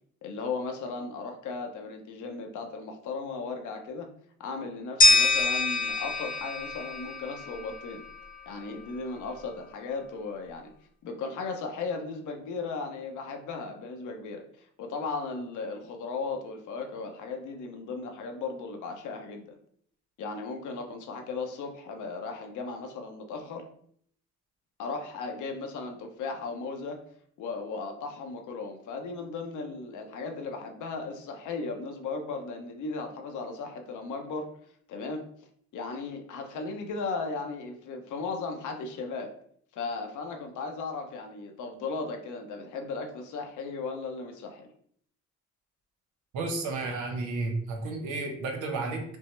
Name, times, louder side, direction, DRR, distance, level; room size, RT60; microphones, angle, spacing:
voice 1, 0.2-4.1 4.4-8.0 8.5-10.7 11.0-19.6 20.2-23.6 24.8-27.0 27.4-34.5 34.9-35.2 35.7-39.3 39.7-44.7, left 4 dB, 80° left, 4 dB, 0.8 m, -36 dB
sound 1, 5.0-7.9, left 2 dB, 30° left, 0.7 m, -24 dB
voice 2, 46.3-49.0, right 3 dB, 85° right, 3 dB, 0.9 m, -32 dB
5.3 x 2.0 x 3.2 m, 0.63 s
cardioid pair, 90°, 30 cm